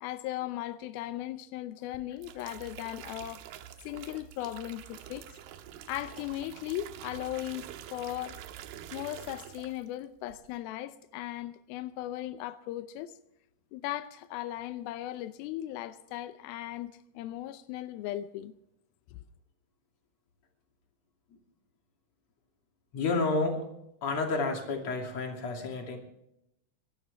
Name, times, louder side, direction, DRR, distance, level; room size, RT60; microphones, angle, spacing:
voice 1, 0.0-3.4 3.8-5.4 5.9-8.4 8.9-13.2 13.7-18.5, left 14 dB, 90° left, 2.1 m, -37 dB
sound 1, 1.9-10.0 10.3-10.6, right 11 dB, 75° right, 2.6 m, -47 dB
voice 2, 22.9-23.6 24.0-26.0, left 3 dB, 40° left, 3.3 m, -30 dB
25.5 x 12.5 x 3.4 m
omnidirectional pair, 5.1 m